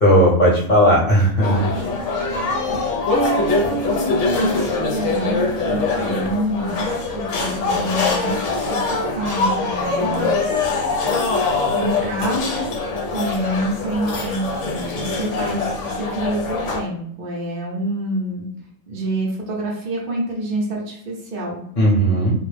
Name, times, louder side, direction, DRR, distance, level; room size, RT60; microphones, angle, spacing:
voice 1, 0.0-1.7 21.8-22.3, equal, 40° left, -6 dB, 1.0 m, -15 dB
sound 1, 1.4-16.8, left 3 dB, 70° left, 0.9 m, -23 dB
voice 2, 1.5-1.9 2.4-10.3 11.2-11.3 11.8-18.5 18.9-21.6, right 1 dB, 50° right, -3 dB, 0.7 m, -27 dB
2.4 x 2.0 x 3.2 m, 0.70 s
omnidirectional pair, 1.3 m